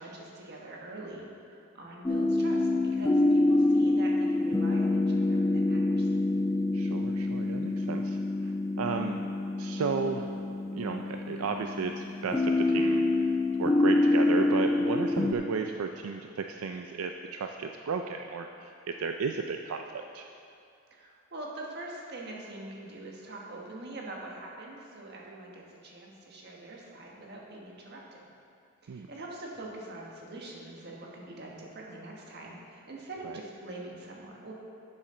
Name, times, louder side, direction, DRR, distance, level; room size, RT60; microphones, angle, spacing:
voice 1, 0.0-6.1 20.9-28.3 28.8-34.5, right 2 dB, 50° right, -2 dB, 1.4 m, -44 dB
sound 1, 2.1-15.3, left 2 dB, 15° left, 0.3 m, -26 dB
voice 2, 6.7-8.2 8.4-9.2 9.6-10.3 10.7-20.3 28.9-29.1 33.2-33.4, right 5 dB, 85° right, 4 dB, 0.4 m, -34 dB
11.0 x 7.5 x 3.8 m, 2.4 s
head